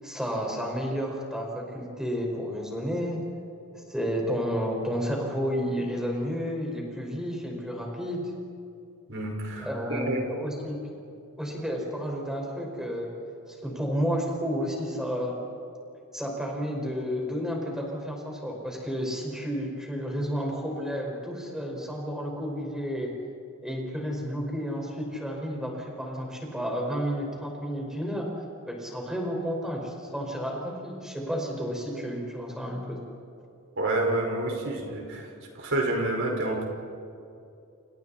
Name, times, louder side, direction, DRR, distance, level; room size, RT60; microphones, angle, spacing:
voice 1, 0.0-3.2 3.7-8.3 9.6-10.8 11.4-13.1 13.5-15.4 16.1-23.1 23.6-28.3 28.7-33.0, equal, 5° right, -1 dB, 5.5 m, -31 dB
voice 2, 9.1-10.3 33.8-35.3 35.5-36.7, right 2 dB, 65° right, 1 dB, 5.5 m, -28 dB
30.0 x 28.5 x 4.4 m, 2.6 s
head